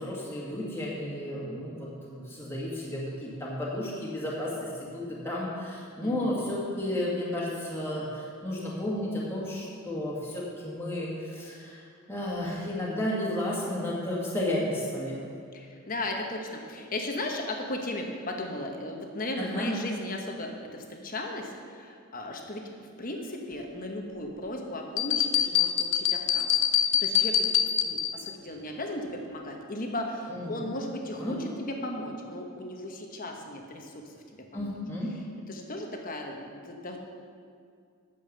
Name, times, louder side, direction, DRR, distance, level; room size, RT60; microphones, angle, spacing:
voice 1, 0.0-15.2 19.4-19.7 30.3-30.7 31.2-31.4 34.5-35.1, left 1 dB, 10° left, -6 dB, 2.0 m, -33 dB
voice 2, 6.0-6.5 15.5-22.6 23.0-26.5 27.0-27.5 27.8-34.7 35.5-37.0, left 1 dB, 40° left, 2 dB, 1.2 m, -36 dB
sound 1, 25.0-28.3, left 9 dB, 60° left, 0.6 m, -25 dB
9.2 x 7.2 x 6.7 m, 2.3 s
head